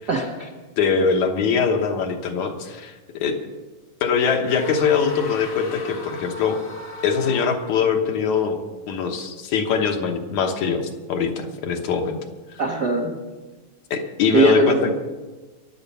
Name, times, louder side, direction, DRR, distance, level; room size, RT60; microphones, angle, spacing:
voice 1, 0.1-0.5 12.6-13.2 14.3-14.9, right 3 dB, 55° right, 0 dB, 1.1 m, -20 dB
voice 2, 0.8-3.4 4.0-6.6 7.0-8.6 8.9-12.2 12.5-12.6 13.9-14.9, left 6 dB, 70° left, 4 dB, 2.5 m, -22 dB
sound 1, 4.5-7.8, left 3 dB, 40° left, 1.2 m, -38 dB
23.0 x 8.0 x 5.6 m, 1.2 s
omnidirectional pair, 3.6 m